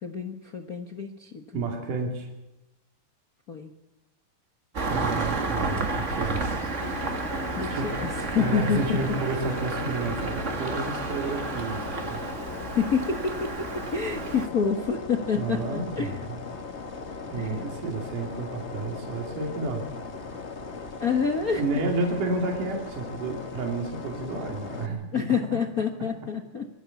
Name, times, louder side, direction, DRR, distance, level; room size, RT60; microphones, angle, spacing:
voice 1, 0.0-1.4 3.5-3.7 7.5-9.0 12.6-16.2 17.4-17.7 21.0-21.8 25.1-26.7, left 6 dB, 65° left, 4 dB, 0.8 m, -28 dB
voice 2, 1.5-2.3 4.8-7.9 8.4-12.2 15.4-16.5 17.3-19.9 20.2-20.3 21.6-25.4, right 3 dB, 65° right, 2 dB, 4.1 m, -31 dB
Engine starting, 4.7-14.5, right 3 dB, 35° right, 1.2 m, -31 dB
sound 1, 6.8-24.9, left 4 dB, 40° left, 1.0 m, -38 dB
24.0 x 14.0 x 8.4 m, 0.97 s
omnidirectional pair, 3.9 m